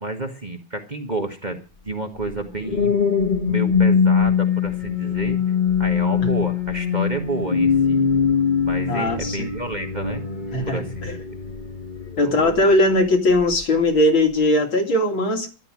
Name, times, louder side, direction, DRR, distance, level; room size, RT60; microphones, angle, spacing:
voice 1, 0.0-1.6 1.9-2.9 3.5-5.4 5.8-8.1 8.6-10.2 10.7-11.2 12.2-12.6, right 2 dB, 20° right, 3 dB, 1.7 m, -30 dB
sound 1, 2.3-12.8 13.3-13.6, left 6 dB, 25° left, 1.7 m, -22 dB
voice 2, 8.9-9.5 10.5-11.2 12.2-15.5, left 1 dB, 75° left, 4 dB, 3.2 m, -19 dB
13.0 x 11.5 x 6.2 m, 0.35 s
omnidirectional pair, 2.2 m